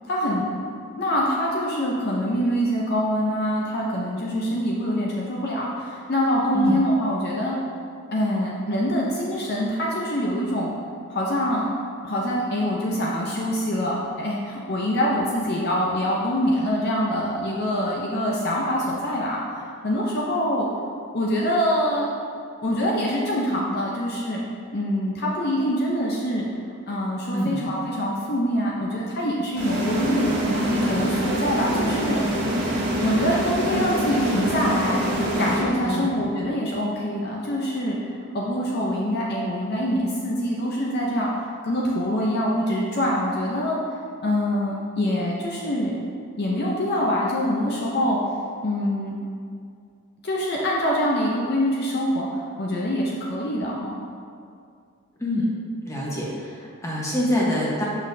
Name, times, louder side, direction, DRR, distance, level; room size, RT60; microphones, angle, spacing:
voice 1, 0.1-0.5 0.9-7.6 8.1-10.7 11.1-11.7 12.0-20.7 21.1-22.1 22.6-24.4 24.7-26.5 26.9-30.3 30.7-32.2 33.0-35.0 35.4-38.0 38.3-43.8 44.2-46.0 46.4-48.2 48.6-49.2 50.2-54.0, equal, 45° left, -3 dB, 0.6 m, -25 dB
sound 1, 29.6-36.2, equal, 50° right, 1.5 m, -25 dB
voice 2, 55.9-57.8, equal, 15° left, -5 dB, 1.1 m, -25 dB
7.1 x 6.3 x 2.7 m, 2.3 s
head